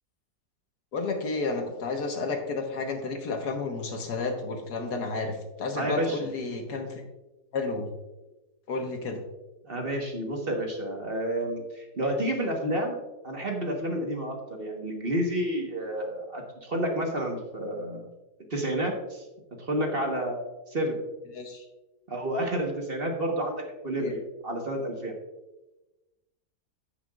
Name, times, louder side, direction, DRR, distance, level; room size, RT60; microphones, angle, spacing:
voice 1, 0.9-7.0 7.5-7.9 8.7-9.2 21.3-21.7 23.9-24.1, left 3 dB, 80° left, 3 dB, 1.8 m, -31 dB
voice 2, 5.7-6.2 9.7-13.0 13.2-18.1 18.5-19.2 19.7-21.0 22.1-23.5 23.8-25.1, right 1 dB, 40° right, 1 dB, 1.4 m, -30 dB
15.5 x 5.9 x 2.4 m, 1.0 s
omnidirectional pair, 1.7 m